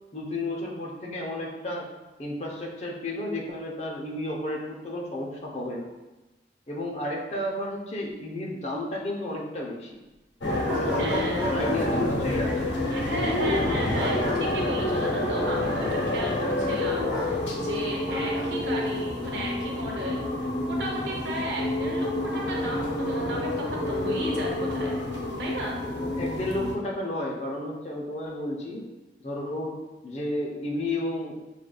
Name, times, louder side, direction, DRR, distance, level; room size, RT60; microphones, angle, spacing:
voice 1, 0.1-1.9 2.2-5.9 6.7-10.0 10.7-12.8 26.0-28.8 29.2-29.8 30.0-31.4, left 1 dB, 35° left, -2 dB, 0.7 m, -32 dB
sound 1, 10.4-26.7, left 1 dB, 80° left, 0.8 m, -28 dB
sound 2, 10.7-11.8 13.9-14.4 17.1-17.3 18.1-18.5, equal, 5° right, 1.0 m, -33 dB
voice 2, 11.0-11.6 12.9-25.0 25.4-25.8, right 1 dB, 80° right, -2 dB, 0.7 m, -35 dB
6.4 x 2.5 x 2.3 m, 1.1 s
head